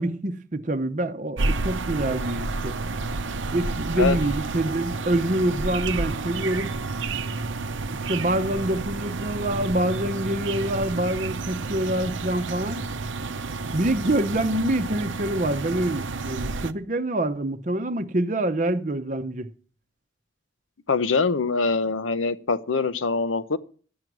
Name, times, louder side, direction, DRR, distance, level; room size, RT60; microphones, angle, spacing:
voice 1, 0.0-2.8 3.5-6.7 7.9-12.8 13.7-19.5, right 1 dB, 40° right, 0.7 m, -26 dB
sound 1, 1.4-16.7, right 3 dB, 75° right, 0.7 m, -30 dB
voice 2, 20.9-23.6, left 4 dB, 85° left, 0.8 m, -23 dB
12.0 x 9.3 x 6.1 m
head